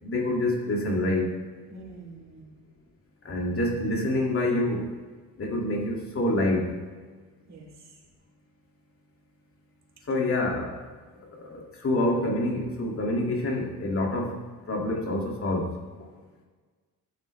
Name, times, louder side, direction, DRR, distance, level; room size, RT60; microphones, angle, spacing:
voice 1, 0.0-1.4 3.2-4.9 5.4-6.8 10.1-10.8 11.3-14.4 14.7-15.8, left 1 dB, 40° left, -1 dB, 2.1 m, -27 dB
voice 2, 1.7-2.5 7.5-8.0 10.1-10.3, right 3 dB, 50° right, -1 dB, 2.7 m, -46 dB
12.5 x 7.4 x 3.2 m, 1.4 s
cardioid pair, 110°, 34 cm